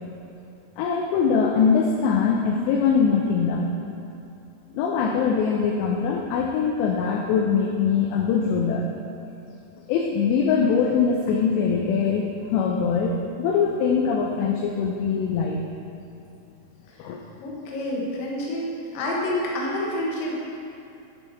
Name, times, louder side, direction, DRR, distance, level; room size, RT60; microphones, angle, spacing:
voice 1, 0.8-3.7 4.7-8.9 9.9-12.2 12.5-15.7 17.0-17.2, left 6 dB, 85° left, 1 dB, 2.5 m, -22 dB
voice 2, 17.4-20.3, left 1 dB, 65° left, -3 dB, 2.4 m, -28 dB
10.0 x 5.6 x 4.1 m, 2.6 s
omnidirectional pair, 5.5 m